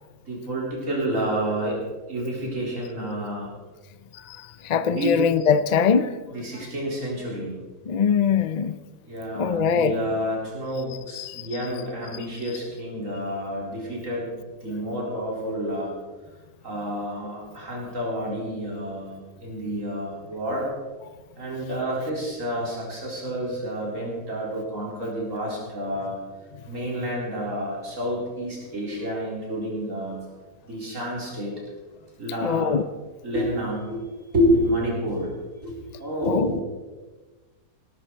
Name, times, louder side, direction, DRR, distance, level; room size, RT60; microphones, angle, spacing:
voice 1, 0.2-1.8 2.1-3.5 4.9-5.2 6.3-7.5 9.1-14.3 14.6-15.9 16.6-20.7 21.3-26.2 26.7-30.2 30.6-31.6 32.2-32.8 33.2-34.0 34.3-35.3 35.6-36.6, equal, 55° right, -3 dB, 4.4 m, -29 dB
voice 2, 4.6-6.1 7.9-8.7 9.4-9.9 11.1-11.5 32.4-32.8 36.3-36.5, left 6 dB, 55° left, 12 dB, 0.4 m, -22 dB
19.0 x 12.5 x 4.5 m, 1.3 s
omnidirectional pair, 1.6 m